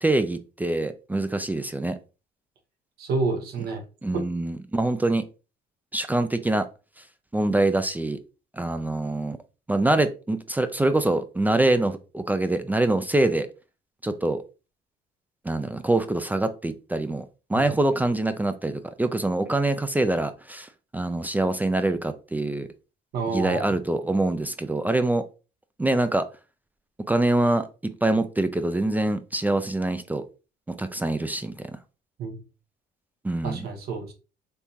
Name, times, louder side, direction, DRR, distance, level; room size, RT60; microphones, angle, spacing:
voice 1, 0.0-2.0 4.0-5.3 5.9-6.7 7.3-8.2 8.5-9.4 9.7-13.5 14.0-14.4 15.5-22.7 23.3-25.2 25.8-26.3 27.1-30.2 30.7-31.5 33.2-33.6, right 2 dB, 10° right, 0.3 m, -24 dB
voice 2, 3.0-3.8 4.1-4.2 17.5-17.7 23.1-23.7 32.2-32.4 33.4-34.1, right 4 dB, 70° right, 1.1 m, -29 dB
3.5 x 2.6 x 2.8 m
cardioid pair, 110°, 17 cm